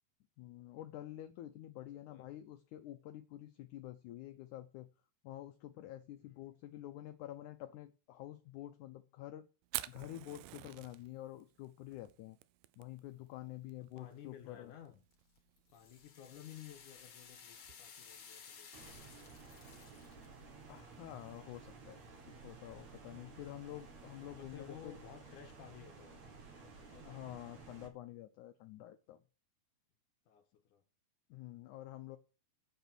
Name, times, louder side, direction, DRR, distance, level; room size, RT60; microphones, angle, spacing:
voice 1, 0.4-4.9 5.2-9.5 9.9-12.4 12.8-14.7 20.7-22.0 22.4-25.0 27.0-29.2 31.3-32.2, left 14 dB, 90° left, 1.7 m, -48 dB
voice 2, 1.9-2.3 6.2-6.5 13.8-15.0 15.7-19.5 22.2-22.3 23.3-23.4 24.4-27.7 30.3-30.8, left 9 dB, 70° left, 2.2 m, -56 dB
Fire, 9.6-19.4, right 16 dB, 80° right, 2.1 m, -50 dB
sound 1, 15.1-20.3, left 6 dB, 50° left, 2.4 m, -56 dB
sound 2, 18.7-27.9, right 4 dB, 55° right, 2.7 m, -55 dB
8.2 x 7.2 x 6.0 m
omnidirectional pair, 4.3 m